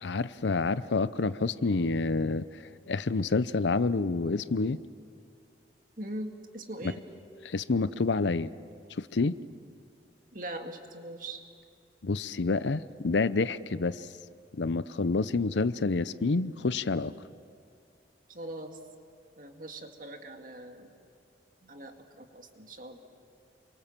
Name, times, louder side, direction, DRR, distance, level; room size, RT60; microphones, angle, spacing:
voice 1, 0.0-2.5 2.9-4.8 7.4-8.5 9.0-9.4 12.0-14.1 14.6-17.1, left 3 dB, 85° left, 16 dB, 0.7 m, -28 dB
voice 2, 6.0-7.0 10.3-11.4 18.3-18.8 19.4-20.9 21.6-23.0, right 1 dB, 50° right, 4 dB, 2.1 m, -41 dB
29.0 x 23.5 x 7.4 m, 2.4 s
head